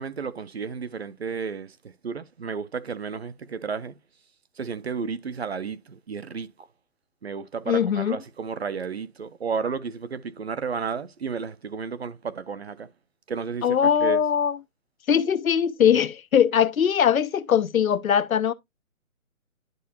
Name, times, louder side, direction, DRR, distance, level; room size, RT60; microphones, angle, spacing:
voice 1, 0.0-4.0 4.6-6.7 7.2-12.9 13.3-14.2, right 5 dB, 50° right, 0.6 m, -32 dB
voice 2, 7.7-8.2 13.6-14.6 15.1-18.5, left 8 dB, 80° left, 0.8 m, -21 dB
11.0 x 4.7 x 2.8 m
hypercardioid pair, 175°, 41 cm